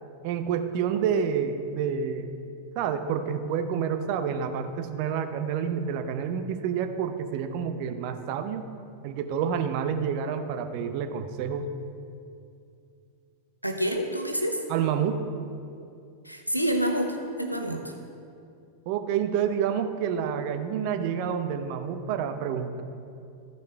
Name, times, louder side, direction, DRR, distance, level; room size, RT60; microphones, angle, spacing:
voice 1, 0.2-2.3 2.8-8.6 9.0-11.7 14.7-15.2 18.9-22.8, right 7 dB, 45° right, 8 dB, 0.7 m, -28 dB
voice 2, 13.6-14.6 16.2-17.9, equal, 90° left, 4 dB, 0.9 m, -28 dB
14.5 x 5.4 x 4.5 m, 2.5 s
figure-of-eight pair, 90°, 0 cm